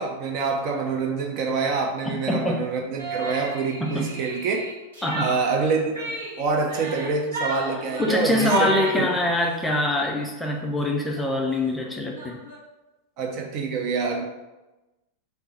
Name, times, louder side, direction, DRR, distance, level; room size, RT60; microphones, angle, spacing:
voice 1, 0.0-4.6 5.2-6.0 6.4-9.1 13.2-14.2, right 4 dB, 40° right, 1 dB, 0.6 m, -26 dB
voice 2, 2.0-2.6 3.8-4.1 5.0-5.3 8.0-12.4, left 2 dB, 5° left, -1 dB, 0.5 m, -24 dB
sound 1, 3.0-9.8 10.2-10.6 10.8-10.9 11.1-12.6, right 2 dB, 65° right, 1.0 m, -33 dB
3.4 x 2.0 x 4.1 m, 1.1 s
figure-of-eight pair, 90°, 0 cm